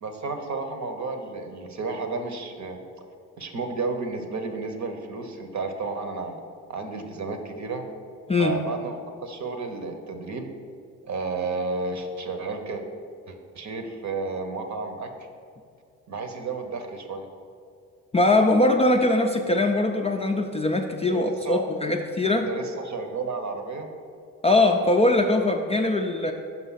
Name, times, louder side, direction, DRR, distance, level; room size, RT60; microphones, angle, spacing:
voice 1, 0.0-2.8 3.4-6.4 6.7-7.8 8.4-10.5 11.0-12.8 13.3-15.1 16.1-17.3 21.1-21.6 22.2-23.9, right 3 dB, 45° right, 6 dB, 0.9 m, -32 dB
voice 2, 18.1-22.5 24.4-26.3, left 2 dB, 15° left, 2 dB, 0.4 m, -21 dB
6.0 x 5.4 x 4.0 m, 2.3 s
hypercardioid pair, 55°, 38 cm